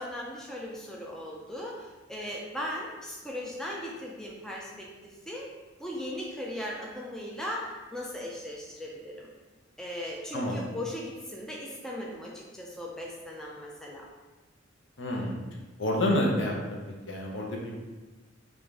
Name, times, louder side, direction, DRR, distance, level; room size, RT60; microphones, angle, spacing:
voice 1, 0.0-5.5 5.8-9.3 9.8-14.1, left 1 dB, 5° left, -3 dB, 0.4 m, -38 dB
voice 2, 15.0-15.3 15.8-16.8 17.1-17.7, left 1 dB, 65° left, -1 dB, 0.8 m, -28 dB
4.8 x 2.5 x 3.5 m, 1.2 s
head